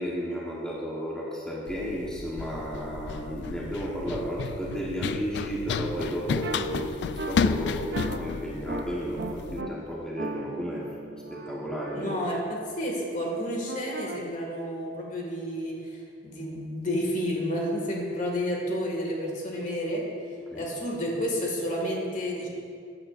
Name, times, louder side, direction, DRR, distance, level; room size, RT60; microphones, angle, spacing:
voice 1, 0.0-10.8 11.3-12.2 20.5-20.6, equal, 5° left, -6 dB, 1.2 m, -33 dB
Run, 1.7-9.6, left 5 dB, 70° left, 0.3 m, -32 dB
sound 1, 6.4-6.6 7.2-7.3 7.9-8.2 8.7-8.8 9.2-9.7 10.2-12.4 13.7-14.2, right 3 dB, 65° right, 0.7 m, -37 dB
voice 2, 11.9-20.1 20.5-22.5, equal, 45° left, -1 dB, 2.0 m, -30 dB
15.0 x 8.9 x 2.6 m, 2.4 s
head